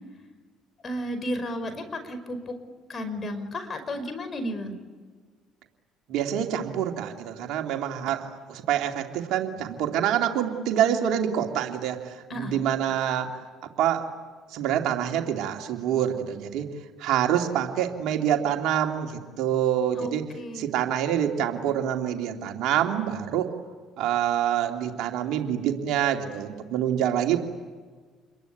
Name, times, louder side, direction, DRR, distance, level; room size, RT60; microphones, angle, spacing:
voice 1, 0.8-2.5 2.9-4.8 12.3-12.7 19.9-20.7, equal, 35° left, 8 dB, 5.3 m, -33 dB
voice 2, 6.1-13.4 13.8-14.1 14.5-16.7 17.0-20.2 20.5-23.5 24.0-27.4, right 10 dB, 70° right, 3 dB, 2.7 m, -26 dB
28.0 x 22.5 x 9.2 m, 1.5 s
hypercardioid pair, 65°, 0 cm